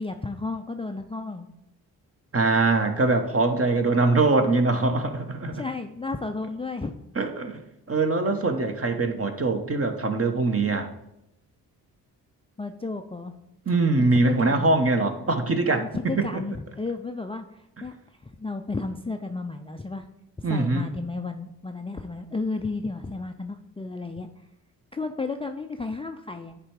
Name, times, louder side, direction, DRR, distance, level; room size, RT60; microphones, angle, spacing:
voice 1, 0.0-1.5 5.5-6.9 12.6-13.3 14.1-14.7 15.8-17.9 18.2-20.1 20.5-24.3 24.9-26.6, left 3 dB, 10° left, 5 dB, 0.5 m, -33 dB
voice 2, 2.3-5.6 7.2-7.6 7.9-10.9 13.7-15.8 16.2-16.4 20.4-20.9, right 3 dB, 30° right, 6 dB, 1.1 m, -23 dB
9.7 x 3.4 x 4.8 m, 0.85 s
hypercardioid pair, 40°, 45 cm